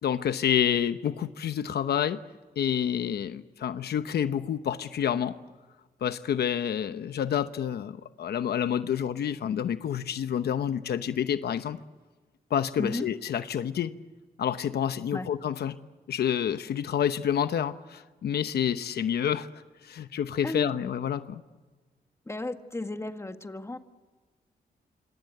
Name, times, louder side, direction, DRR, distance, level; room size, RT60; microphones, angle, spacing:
voice 1, 0.0-2.2 2.6-5.3 6.0-11.8 12.5-13.9 14.4-15.8 16.1-19.5 19.8-21.4, left 9 dB, 85° left, 11 dB, 0.9 m, -28 dB
voice 2, 12.8-13.1 15.1-15.3 20.4-20.8 22.3-23.8, left 2 dB, 15° left, 7 dB, 1.8 m, -34 dB
27.0 x 26.0 x 7.9 m, 1.3 s
cardioid pair, 85°, 16 cm